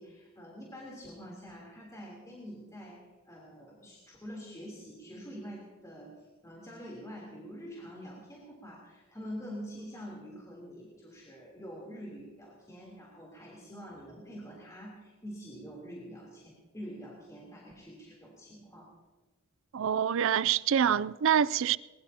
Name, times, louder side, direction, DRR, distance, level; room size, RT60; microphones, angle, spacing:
voice 1, 0.0-18.9, equal, 15° left, 3.3 m, -46 dB
voice 2, 19.7-21.8, right 8 dB, 60° right, 0.4 m, -26 dB
22.0 x 21.0 x 2.9 m
head